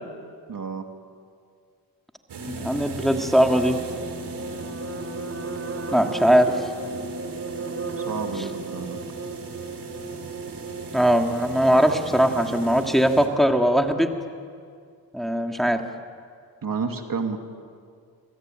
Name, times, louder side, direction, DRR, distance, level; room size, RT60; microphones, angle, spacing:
voice 1, 0.5-0.9 8.0-9.0 16.6-17.4, right 5 dB, 55° right, 5 dB, 2.7 m, -30 dB
sound 1, 2.3-13.3, right 2 dB, 75° right, 3.9 m, -38 dB
voice 2, 2.5-3.8 5.9-6.7 8.4-8.5 10.9-14.1 15.1-15.8, equal, ahead, 4 dB, 2.6 m, -20 dB
sound 2, 3.1-12.7, right 4 dB, 35° right, 3.7 m, -36 dB
27.0 x 22.5 x 9.3 m, 2.2 s
cardioid pair, 50°, 40 cm